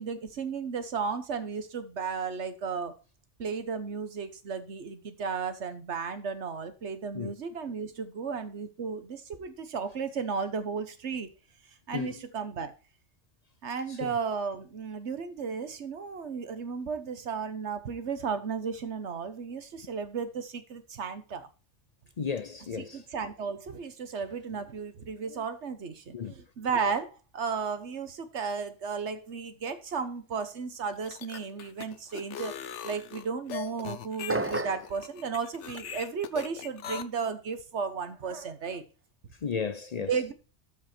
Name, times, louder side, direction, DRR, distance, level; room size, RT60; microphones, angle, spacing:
voice 1, 0.0-2.9 3.4-11.3 11.9-12.7 13.6-21.5 22.8-38.8 40.1-40.3, right 5 dB, 75° right, 1.4 m, -34 dB
voice 2, 22.2-23.1 26.1-26.3 39.4-40.1, left 6 dB, 45° left, 0.6 m, -34 dB
sound 1, 30.9-37.0, left 9 dB, 85° left, 1.1 m, -40 dB
sound 2, 34.3-34.9, right 2 dB, 15° right, 0.5 m, -31 dB
13.0 x 5.4 x 4.4 m
omnidirectional pair, 1.2 m